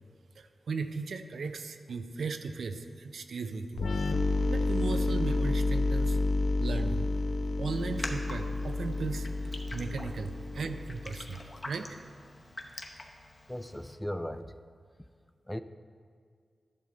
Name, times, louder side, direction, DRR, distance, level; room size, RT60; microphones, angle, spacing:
voice 1, 0.4-12.0, right 4 dB, 85° right, 8 dB, 0.5 m, -37 dB
sound 1, 3.8-11.4, left 2 dB, 70° left, 0.5 m, -30 dB
Raindrop, 7.7-13.9, left 2 dB, 35° left, 0.9 m, -45 dB
voice 2, 13.5-14.6 15.5-15.6, equal, 5° left, 10 dB, 0.4 m, -37 dB
11.5 x 6.6 x 3.8 m, 2.1 s
wide cardioid pair, 75°, 0 cm